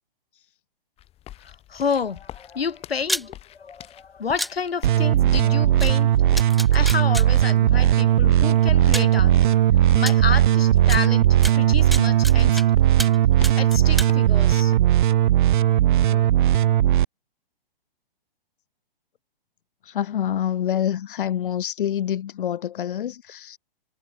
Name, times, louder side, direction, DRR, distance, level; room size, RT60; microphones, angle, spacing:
sound 1, 1.0-14.8, left 13 dB, 20° left, 5.3 m, -48 dB
voice 1, 1.4-6.1 6.7-9.5 10.0-12.6 13.5-14.7, left 6 dB, 90° left, 6.4 m, -30 dB
sound 2, 3.0-3.3 4.4-4.5 5.8-5.9 6.4-7.3 8.3-8.4 8.9-9.1 10.1-10.2 10.9-11.0 11.4-12.6 13.0-13.2 13.4-14.1, equal, ahead, 0.3 m, -29 dB
sound 3, 4.8-17.0, right 12 dB, 55° right, 0.7 m, -18 dB
voice 2, 19.8-23.6, left 10 dB, 60° left, 1.9 m, -27 dB
hypercardioid pair, 145°, 29 cm